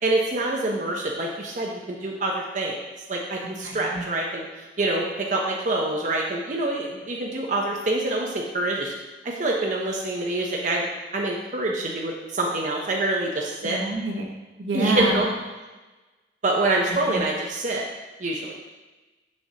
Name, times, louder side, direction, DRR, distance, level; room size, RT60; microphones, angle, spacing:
voice 1, 0.0-2.8 3.1-8.9 9.2-10.8 11.1-13.8 14.7-15.3 16.4-17.8 18.2-18.5, right 2 dB, 45° right, -1 dB, 0.6 m, -26 dB
voice 2, 3.6-4.0 13.6-14.2 14.6-15.1 17.1-17.2, right 2 dB, 80° right, 0 dB, 1.1 m, -27 dB
6.3 x 6.3 x 2.8 m, 1.2 s
head